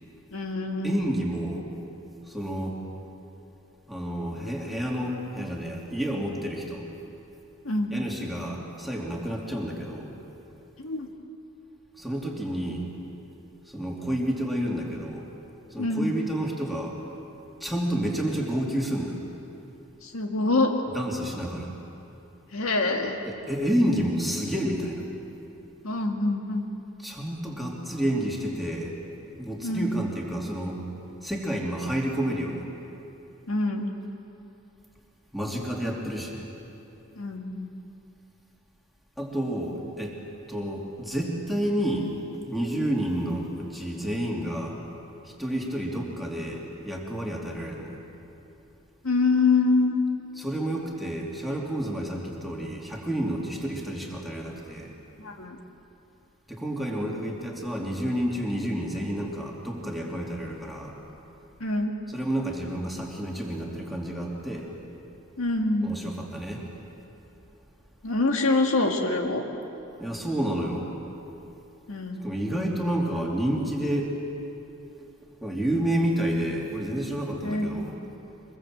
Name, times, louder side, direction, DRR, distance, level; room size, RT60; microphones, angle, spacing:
voice 1, 0.3-1.0 7.6-7.9 10.8-11.1 15.8-16.1 20.0-20.7 22.5-23.2 25.8-26.7 29.6-30.0 33.5-33.9 37.2-37.7 49.0-50.0 55.2-55.6 61.6-61.9 65.4-65.9 68.0-69.4 71.9-72.3 77.4-77.9, left 3 dB, 70° left, 2 dB, 1.8 m, -25 dB
voice 2, 0.8-1.6 2.3-2.8 3.9-6.9 7.9-10.1 12.0-12.8 13.7-15.3 15.7-17.0 17.6-19.2 20.9-21.7 23.3-25.0 27.0-29.0 29.4-30.8 31.2-32.6 35.3-36.5 39.2-40.2 40.5-42.1 42.5-44.8 45.2-48.0 50.4-54.9 56.5-60.9 62.1-64.7 65.8-66.7 70.0-70.9 72.2-74.1 75.4-77.9, right 1 dB, ahead, -2 dB, 2.9 m, -30 dB
23.5 x 22.0 x 7.7 m, 2.9 s
head